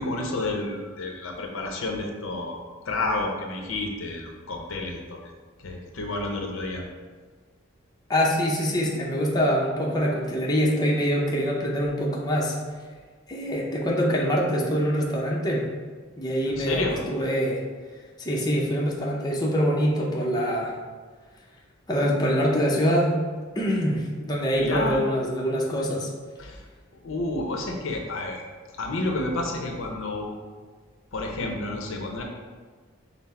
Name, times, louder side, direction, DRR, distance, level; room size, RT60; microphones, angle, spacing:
voice 1, 0.0-2.6 2.9-5.2 5.6-6.8 16.6-17.0 24.6-25.0 26.4-26.5 27.0-28.4 28.8-30.3 31.1-32.2, left 2 dB, 75° left, 2 dB, 0.6 m, -30 dB
voice 2, 8.1-12.6 13.3-15.7 16.2-17.6 18.2-20.7 21.9-23.2 23.5-26.1, equal, 20° left, -3 dB, 0.6 m, -24 dB
5.7 x 2.0 x 4.1 m, 1.5 s
head